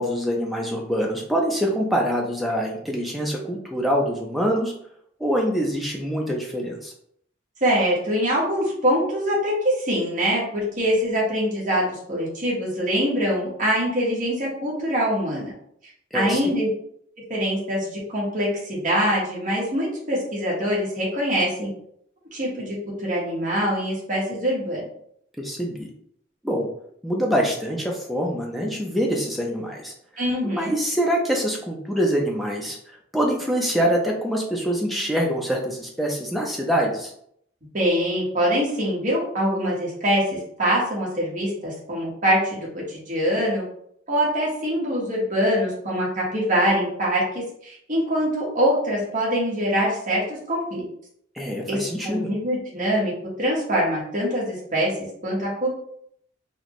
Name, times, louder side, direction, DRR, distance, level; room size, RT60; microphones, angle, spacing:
voice 1, 0.0-4.7 5.2-6.9 16.1-16.4 25.4-25.9 26.4-26.7 27.0-29.9 30.6-32.8 33.1-37.1 51.4-52.3, equal, ahead, -2 dB, 0.6 m, -25 dB
voice 2, 7.6-15.5 16.1-16.7 17.3-21.7 22.3-24.8 30.2-30.8 37.7-43.6 44.1-50.8 51.7-53.1 53.4-55.0 55.2-55.7, equal, 40° right, -5 dB, 1.3 m, -24 dB
4.1 x 2.3 x 3.0 m, 0.68 s
head